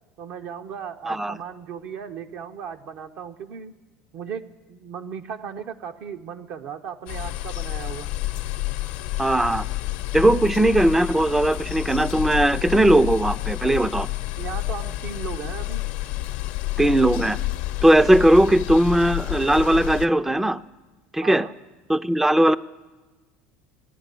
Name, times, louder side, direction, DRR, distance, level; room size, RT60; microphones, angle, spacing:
voice 1, 0.2-3.7 4.1-8.1 14.4-15.9 21.2-21.5, right 7 dB, 60° right, 6 dB, 0.6 m, -36 dB
voice 2, 1.1-1.4 9.2-9.6 10.1-14.1 16.8-17.4 17.8-20.6 21.1-21.5 21.9-22.6, right 1 dB, 5° right, 14 dB, 0.4 m, -18 dB
sound 1, 7.1-20.1, left 16 dB, 70° left, 0.7 m, -29 dB
15.0 x 10.0 x 8.3 m, 1.2 s
hypercardioid pair, 80°, 4 cm